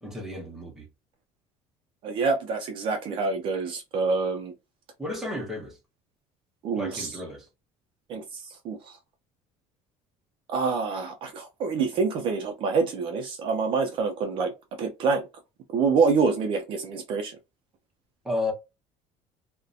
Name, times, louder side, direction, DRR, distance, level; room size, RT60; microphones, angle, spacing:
voice 1, 0.0-0.9 5.0-5.8 6.8-7.5 18.2-18.5, left 2 dB, 5° right, 0.6 m, -32 dB
voice 2, 2.0-4.5 6.6-7.1 8.1-8.2 8.6-8.8 10.5-14.5 14.8-15.2 15.7-17.3, right 4 dB, 40° right, 0.4 m, -26 dB
2.7 x 2.1 x 2.3 m
cardioid pair, 175°, 13 cm